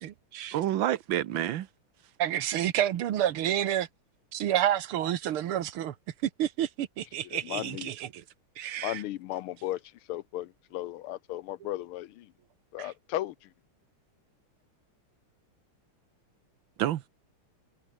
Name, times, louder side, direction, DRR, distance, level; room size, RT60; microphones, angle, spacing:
voice 1, 0.0-0.6 2.2-3.9 4.3-5.9 6.2-8.2 8.6-9.0 12.8-12.9, right 11 dB, 85° right, 2.0 m, -29 dB
voice 2, 0.5-1.7 16.8-17.1, right 12 dB, 70° right, 1.6 m, -28 dB
voice 3, 7.2-7.9 8.8-9.8 10.1-12.3 12.7-13.3, left 14 dB, 90° left, 1.7 m, -35 dB
omnidirectional pair, 2.3 m